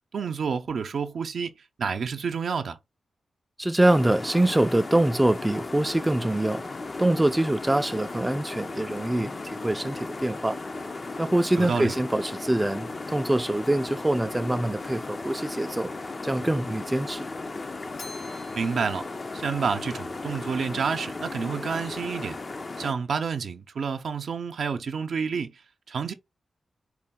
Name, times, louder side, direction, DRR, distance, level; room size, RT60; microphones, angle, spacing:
voice 1, 0.1-1.5 1.8-2.8 11.6-11.9 18.6-19.1 19.3-22.4 22.8-25.5 25.9-26.1, right 5 dB, 75° right, 0.6 m, -29 dB
voice 2, 3.6-6.6 7.0-10.6 11.2-15.9 16.2-17.3, right 1 dB, 15° right, 0.4 m, -24 dB
sound 1, 3.8-22.9, left 3 dB, 45° left, 0.5 m, -36 dB
Bell, 18.0-20.2, left 3 dB, 85° left, 1.1 m, -48 dB
4.7 x 2.2 x 3.6 m
cardioid pair, 55°, 0 cm